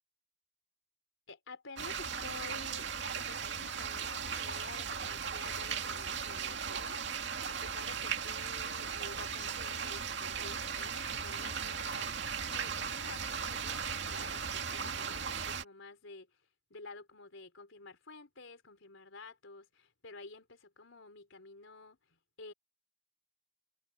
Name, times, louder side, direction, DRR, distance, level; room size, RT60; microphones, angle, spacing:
voice 1, 1.3-2.9 3.2-12.3 12.5-22.5, left 3 dB, 85° left, 3.9 m, -51 dB
sound 1, 1.8-15.6, right 6 dB, 60° right, 2.4 m, -37 dB
head